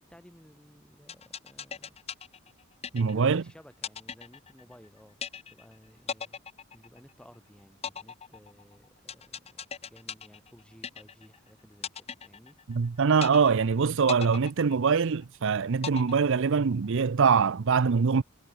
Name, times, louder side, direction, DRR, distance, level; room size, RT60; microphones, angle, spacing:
voice 1, 0.0-2.0 2.9-5.2 5.5-6.4 6.7-12.6, equal, 5° left, 3.0 m, -56 dB
sound 1, 1.1-3.4 3.8-4.9 5.2-5.7 6.1-7.3 7.8-11.4 11.8-12.9 13.2-13.7 14.1-15.3 15.8-16.8, left 7 dB, 30° left, 0.7 m, -39 dB
voice 2, 2.9-3.4 12.7-18.2, right 5 dB, 65° right, 0.6 m, -23 dB
head